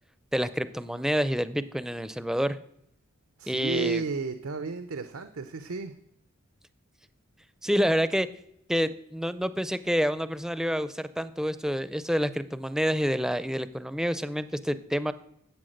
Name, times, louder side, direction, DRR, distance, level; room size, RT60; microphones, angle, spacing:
voice 1, 0.3-2.6 3.5-4.0 7.6-8.3 8.7-15.1, equal, ahead, 14 dB, 0.4 m, -28 dB
voice 2, 3.4-5.9, right 4 dB, 90° right, 9 dB, 0.7 m, -32 dB
11.5 x 8.0 x 6.5 m, 0.76 s
head